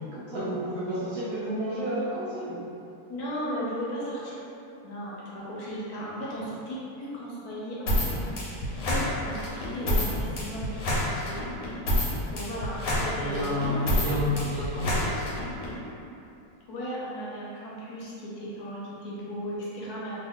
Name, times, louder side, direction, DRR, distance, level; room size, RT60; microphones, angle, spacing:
voice 1, 0.1-2.6 13.2-15.2, equal, 65° right, -9 dB, 0.9 m, -30 dB
voice 2, 3.1-4.4 4.8-8.3 8.8-10.8 11.3-11.4 12.3-14.1 16.7-20.2, equal, 70° left, -6 dB, 1.0 m, -36 dB
sound 1, 7.9-15.7, left 1 dB, 85° left, 1.4 m, -28 dB
3.0 x 2.4 x 3.5 m, 2.8 s
omnidirectional pair, 1.9 m